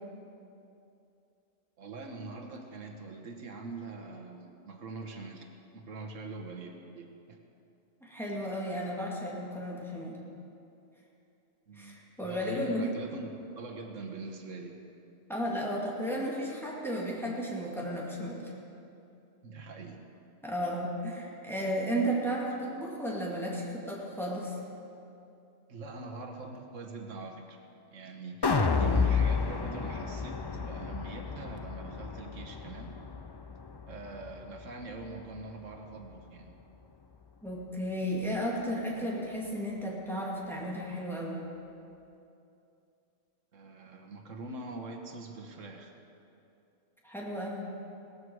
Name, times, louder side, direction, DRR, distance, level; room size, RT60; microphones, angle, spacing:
voice 1, 1.8-5.5 5.7-7.4 11.7-13.3 13.6-14.8 19.4-20.1 25.7-27.6 27.9-33.0 33.8-36.5 43.5-45.9, right 3 dB, 90° right, 4 dB, 1.6 m, -43 dB
voice 2, 8.0-10.2 11.7-12.9 15.3-18.5 20.4-24.6 37.4-41.4 47.0-47.7, equal, ahead, -4 dB, 2.5 m, -34 dB
sound 1, 28.4-34.6 35.0-35.1, left 5 dB, 35° left, 0.4 m, -31 dB
18.0 x 14.0 x 4.8 m, 2.7 s
omnidirectional pair, 1.3 m